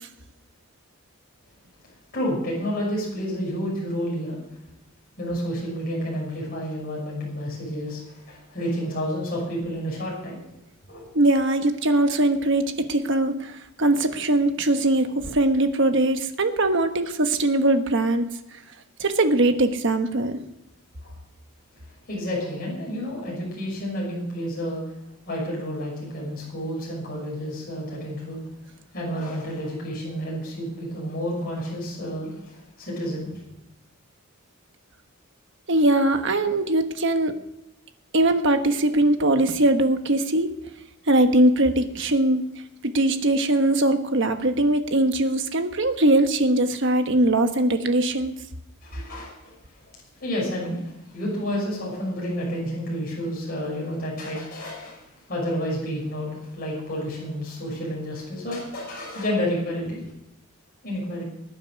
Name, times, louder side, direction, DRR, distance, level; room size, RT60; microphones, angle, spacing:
voice 1, 2.1-4.4 5.2-10.4 10.9-11.1 21.0-21.1 22.1-24.8 25.3-28.4 28.9-33.3 48.8-49.6 50.2-60.1 60.8-61.2, equal, 45° left, -4 dB, 6.0 m, -30 dB
voice 2, 11.1-18.2 19.0-20.4 35.7-37.3 38.1-40.5 41.1-42.5 42.8-48.3, right 1 dB, 55° right, 7 dB, 1.2 m, -21 dB
20.0 x 9.5 x 6.4 m, 0.89 s
head